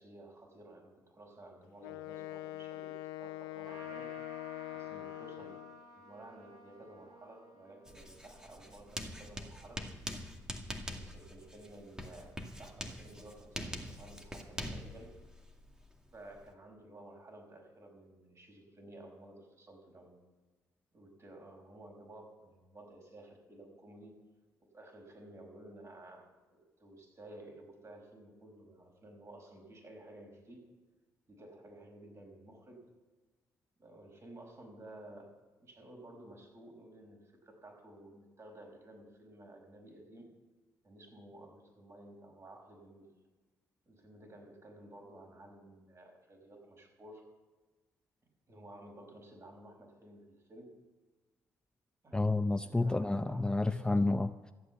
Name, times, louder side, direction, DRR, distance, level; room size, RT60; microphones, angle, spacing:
voice 1, 0.0-4.1 4.7-9.8 10.9-15.2 16.1-20.2 20.9-24.2 24.7-30.6 31.3-32.9 33.8-40.3 40.8-43.1 43.9-47.2 48.5-50.7 52.0-52.2 52.6-53.9, right 1 dB, 40° right, 1 dB, 5.9 m, -54 dB
Wind instrument woodwind instrument, 1.8-5.8, left 18 dB, 85° left, 0.6 m, -43 dB
Trumpet, 3.6-9.5, right 2 dB, 65° right, 4.5 m, -55 dB
Writing, 7.9-16.5, equal, 10° right, 2.2 m, -44 dB
voice 2, 52.1-54.5, left 2 dB, 10° left, 10 dB, 0.6 m, -30 dB
14.5 x 8.3 x 8.4 m, 1.2 s
hypercardioid pair, 50°, 8 cm